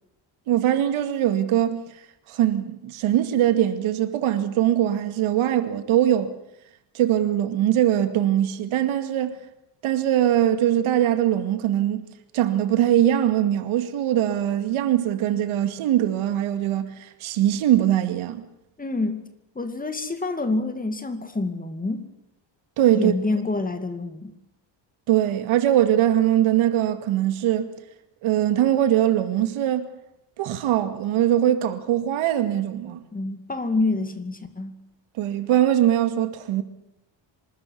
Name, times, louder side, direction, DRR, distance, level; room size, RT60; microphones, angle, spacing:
voice 1, 0.5-1.9 2.3-6.3 6.9-9.4 9.8-12.1 12.3-18.4 22.8-23.1 25.1-27.7 28.2-29.9 30.4-33.0 35.2-36.6, right 11 dB, 80° right, 2.3 m, -21 dB
voice 2, 18.8-19.2 19.6-22.1 22.9-24.3 33.1-34.8, left 3 dB, 15° left, 2.4 m, -27 dB
25.5 x 13.5 x 9.5 m
cardioid pair, 130°, 48 cm